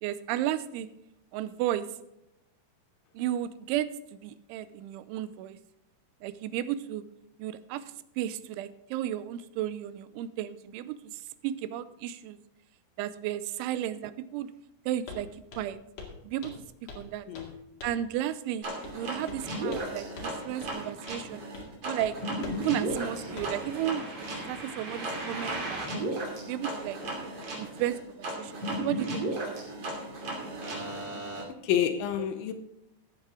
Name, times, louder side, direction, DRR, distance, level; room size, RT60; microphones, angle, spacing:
voice 1, 0.0-0.9 1.3-1.9 3.1-3.9 4.2-5.6 6.2-7.0 7.4-7.8 8.2-12.4 13.0-14.5 14.9-15.3 15.6-15.8 16.2-16.6 17.0-17.3 17.8-18.7 18.9-21.5 21.8-22.2 22.6-26.1 26.4-27.0 27.6-29.7, right 12 dB, 90° right, 14 dB, 3.1 m, -33 dB
Walk footsteps, 15.1-15.2 15.5-15.7 16.0-16.2 16.4-17.1 17.3-17.5 17.8-18.1 18.8-19.0 19.3-19.9 20.2-20.3 20.6-20.7 21.1-21.2 21.5-21.7 22.0-22.1 22.4-22.6 22.9-23.0 23.4-23.6, left 4 dB, 45° left, 2.7 m, -43 dB
sound 1, 18.6-31.4, right 1 dB, 35° right, 3.4 m, -35 dB
voice 2, 31.6-32.5, left 9 dB, 80° left, 8 dB, 3.1 m, -28 dB
15.0 x 9.1 x 3.8 m, 0.86 s
omnidirectional pair, 5.3 m